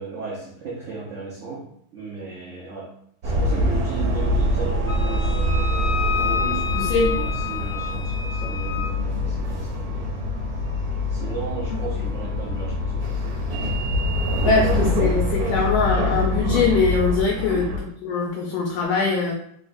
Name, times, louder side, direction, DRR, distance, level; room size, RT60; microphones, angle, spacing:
voice 1, 0.0-1.6 1.9-2.9 3.2-5.5 6.2-10.2 11.1-13.4 14.3-14.8 17.3-17.5, right 4 dB, 75° right, -5 dB, 0.6 m, -36 dB
sound 1, 3.2-17.8, left 1 dB, 55° right, 1.1 m, -24 dB
Wind instrument woodwind instrument, 4.9-8.9, left 7 dB, 20° right, 0.9 m, -29 dB
voice 2, 6.7-7.2 14.4-19.3, left 4 dB, 75° left, 0 dB, 1.3 m, -22 dB
3.9 x 3.2 x 2.5 m, 0.69 s
omnidirectional pair, 2.4 m